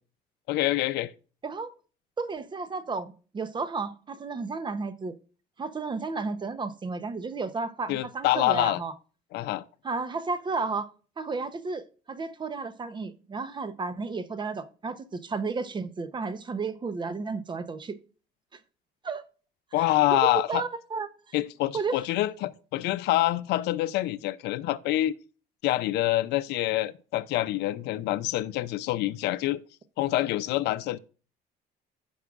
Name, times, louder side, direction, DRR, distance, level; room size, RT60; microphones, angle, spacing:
voice 1, 0.5-1.1 7.9-8.8 9.3-9.6 19.7-20.6 21.3-25.1 25.6-29.6 30.0-31.0, left 16 dB, 80° left, 0.5 m, -26 dB
voice 2, 2.2-5.1 5.6-8.9 9.8-18.0 19.0-19.2 19.8-21.3 21.7-22.0, right 4 dB, 25° right, 0.8 m, -33 dB
15.5 x 5.5 x 2.4 m
cardioid pair, 110°, 17 cm